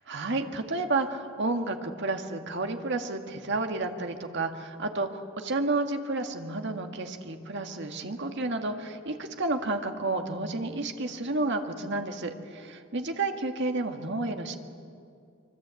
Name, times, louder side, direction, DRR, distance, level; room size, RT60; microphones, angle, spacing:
voice 1, 0.0-14.6, right 2 dB, 55° right, 5 dB, 1.9 m, -31 dB
25.0 x 25.0 x 8.4 m, 2.4 s
head